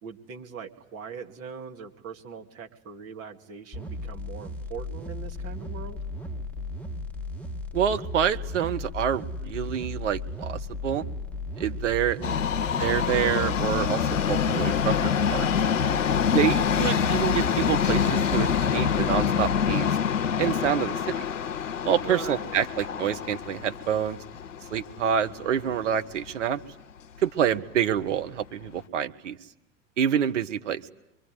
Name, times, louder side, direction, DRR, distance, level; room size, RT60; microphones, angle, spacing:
voice 1, 0.0-6.0 12.1-12.4 21.9-22.6, right 6 dB, 35° right, 3 dB, 2.5 m, -41 dB
sound 1, 3.7-19.7, left 2 dB, 5° left, 1.8 m, -35 dB
voice 2, 7.7-11.0 11.6-12.2 12.8-15.5 16.3-19.9 20.4-20.9 21.8-24.2 24.7-26.6 27.2-29.4 30.0-30.9, right 9 dB, 65° right, 8 dB, 1.3 m, -27 dB
Subway metro underground, 12.2-26.3 26.6-26.7 27.6-27.7 28.0-28.1 28.7-28.8, left 7 dB, 70° left, 1.0 m, -26 dB
25.0 x 23.5 x 9.6 m, 0.83 s
figure-of-eight pair, 80°, 39 cm